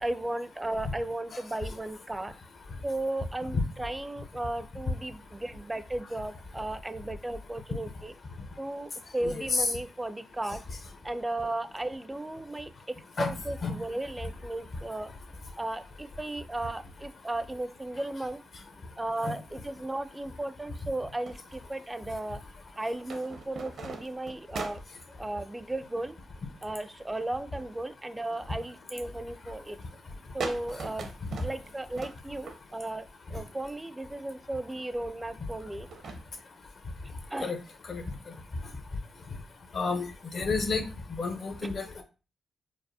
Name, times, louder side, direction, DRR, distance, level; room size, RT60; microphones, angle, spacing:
voice 1, 0.0-2.3 2.8-8.1 8.6-10.6 11.0-15.1 15.6-18.4 19.0-22.4 22.8-24.8 25.2-26.1 26.6-29.8 30.3-31.1 31.4-35.9 37.3-37.5 41.6-41.7, right 1 dB, 20° right, 13 dB, 0.4 m, -35 dB
voice 2, 9.2-9.7 13.2-13.3 13.6-13.8 19.2-19.3 37.4-37.6 37.9-38.0 39.7-40.1 40.3-40.8 41.2-42.0, left 4 dB, 60° left, 6 dB, 0.8 m, -30 dB
sound 1, 21.2-22.2 23.0-25.1 27.2-27.8 28.3-28.7 29.2-29.5 29.8-29.9 30.4-32.9 33.7-33.8 35.6-36.3, right 4 dB, 70° right, 0.6 m, -40 dB
4.8 x 2.1 x 2.7 m, 0.32 s
supercardioid pair, 45°, 0 cm